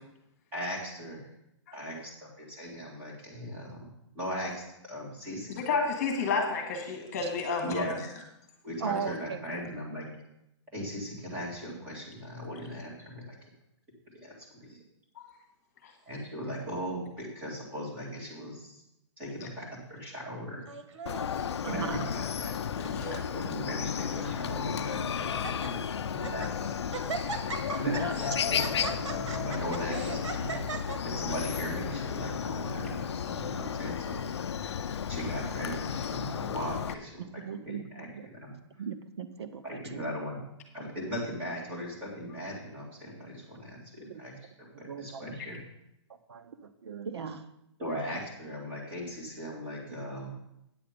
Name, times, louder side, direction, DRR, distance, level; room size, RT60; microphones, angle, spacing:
voice 1, 0.5-1.2 1.7-3.9 4.1-5.6 7.6-8.0 8.6-10.1 10.7-13.4 14.2-14.8 16.1-18.8 19.2-20.6 21.6-26.7 27.7-30.6 31.0-34.2 35.1-37.2 37.6-38.5 39.6-40.4 40.7-44.3 44.6-45.6 47.8-50.3, equal, 10° right, -4 dB, 2.2 m, -38 dB
voice 2, 5.6-7.8 15.2-15.3 22.9-23.1 27.7-27.8, left 4 dB, 30° left, 3 dB, 1.6 m, -30 dB
voice 3, 8.8-9.4 21.6-22.0 23.0-23.2 27.9-28.2 35.1-35.3 37.4-38.3 38.8-40.0 44.0-44.2 44.7-45.3 46.3-47.4 49.9-50.1, right 6 dB, 60° right, 9 dB, 0.8 m, -37 dB
Laughter, 20.7-21.5 22.2-22.6 22.8-22.9 23.7-24.3 24.9-25.0 25.3-25.7 26.1-26.5 26.9-31.7, right 4 dB, 90° right, 1.7 m, -39 dB
Chicken rooster, 21.1-36.9, left 8 dB, 65° left, 0.5 m, -33 dB
9.4 x 7.8 x 5.1 m, 0.83 s
hypercardioid pair, 180°, 15 cm